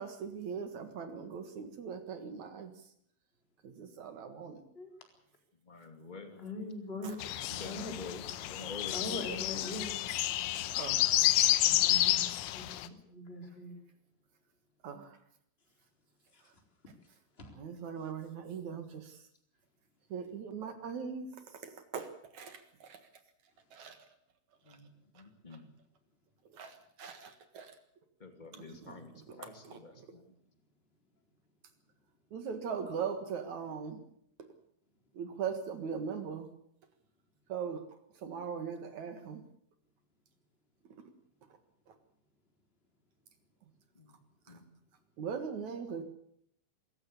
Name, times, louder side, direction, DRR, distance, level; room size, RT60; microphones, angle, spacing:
voice 1, 0.0-2.7 3.6-4.6 7.0-7.2 7.5-7.7 10.7-11.0 14.8-15.2 17.5-19.2 20.1-23.0 23.7-24.1 24.7-24.8 25.1-25.2 26.5-27.8 28.5-30.1 32.3-34.0 35.1-36.5 37.5-37.8 38.2-39.4 41.9-42.0 44.5-44.6 45.2-46.0, right 6 dB, 55° right, 9 dB, 2.2 m, -40 dB
voice 2, 5.7-6.5 7.5-9.2 24.7-24.9 25.1-25.7 28.2-30.2 44.0-44.1 44.5-44.6, left 3 dB, 35° left, 6 dB, 0.7 m, -47 dB
voice 3, 6.4-7.9 8.9-10.0 11.6-13.8 17.4-17.5, left 2 dB, 15° left, 3 dB, 3.6 m, -42 dB
sound 1, 7.2-12.9, left 15 dB, 85° left, 3.5 m, -30 dB
24.5 x 14.5 x 8.4 m, 0.69 s
omnidirectional pair, 5.5 m